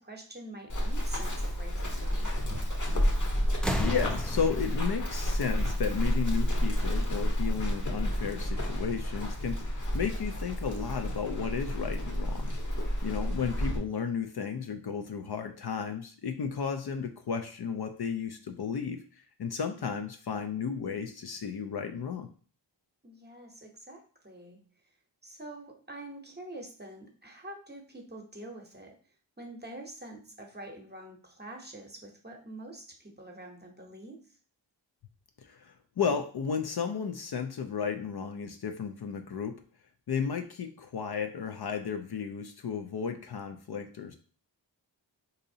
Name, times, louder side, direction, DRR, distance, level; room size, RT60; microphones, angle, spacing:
voice 1, 0.0-2.3 13.1-13.7 23.0-24.6 25.2-28.9 29.4-34.2, right 1 dB, 20° right, 2 dB, 0.8 m, -46 dB
Run, 0.7-13.8, equal, 40° left, 0.9 m, -30 dB
sound 1, 2.9-3.2 3.5-6.3 7.4-7.5, left 1 dB, ahead, 0.4 m, -36 dB
voice 2, 3.7-12.7 13.0-19.0 19.4-22.3 35.4-39.5 40.1-44.1, left 6 dB, 55° left, 6 dB, 0.5 m, -33 dB
3.9 x 2.7 x 2.7 m, 0.42 s
wide cardioid pair, 45°, 45 cm